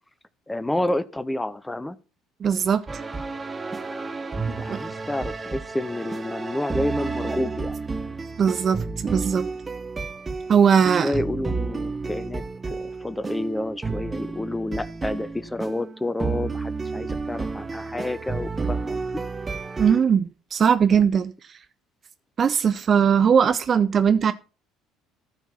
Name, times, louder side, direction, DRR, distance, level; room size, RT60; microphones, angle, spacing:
voice 1, 0.5-2.0 4.3-7.8 11.0-19.2, left 1 dB, 10° left, 0.6 m, -29 dB
voice 2, 2.4-2.8 4.5-4.9 8.4-9.5 10.5-11.1 19.8-21.6 22.4-24.3, right 7 dB, 40° right, 0.6 m, -20 dB
sound 1, 2.9-20.0, right 4 dB, 25° right, 1.1 m, -31 dB
13.5 x 4.6 x 5.5 m
figure-of-eight pair, 55°, 0 cm